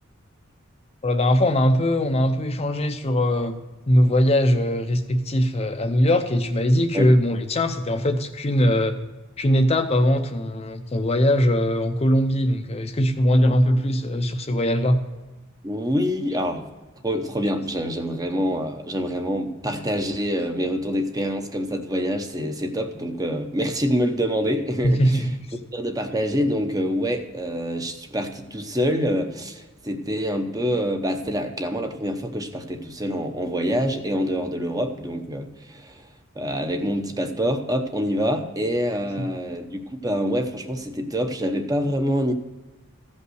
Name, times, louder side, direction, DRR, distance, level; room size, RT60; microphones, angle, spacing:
voice 1, 1.0-3.6 3.9-9.0 9.4-15.0 24.8-25.3 39.2-39.3, equal, 30° left, 6 dB, 0.6 m, -21 dB
voice 2, 15.6-16.7 17.0-25.3 25.7-36.0 36.3-42.3, equal, 15° right, 6 dB, 0.8 m, -26 dB
14.5 x 5.4 x 6.3 m, 1.2 s
head